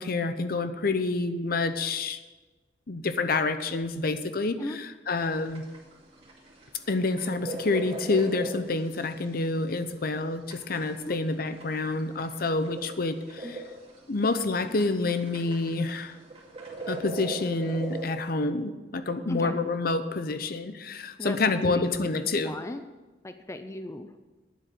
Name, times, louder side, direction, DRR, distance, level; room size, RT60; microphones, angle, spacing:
voice 1, 0.0-2.2 2.9-5.6 6.9-13.6 14.1-16.2 16.9-22.5, left 3 dB, 55° left, 10 dB, 0.7 m, -28 dB
sound 1, 5.2-18.1, right 2 dB, 35° right, 2.4 m, -40 dB
voice 2, 21.2-22.8 23.2-24.1, left 1 dB, 15° left, 9 dB, 0.5 m, -36 dB
9.5 x 7.8 x 7.9 m, 1.2 s
head